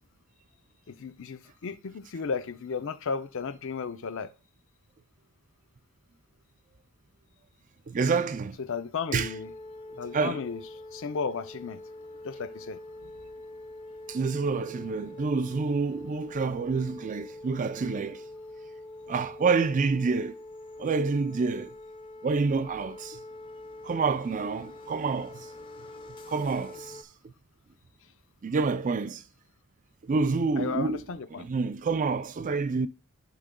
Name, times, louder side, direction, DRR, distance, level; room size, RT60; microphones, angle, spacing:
voice 1, 0.9-4.3 8.6-9.5 10.0-10.6 10.9-11.8 12.2-12.8 30.6-31.5, left 5 dB, 60° left, 0.5 m, -34 dB
voice 2, 7.9-8.6 9.1-9.3 10.1-10.4 14.1-18.2 19.1-20.3 20.8-21.7 22.2-23.2 23.8-25.5 26.3-27.0 28.4-29.2 30.1-31.0 31.4-32.9, right 4 dB, 35° right, 0.4 m, -28 dB
sound 1, 9.1-27.0, left 2 dB, 20° left, 0.8 m, -44 dB
14.5 x 5.0 x 2.2 m
head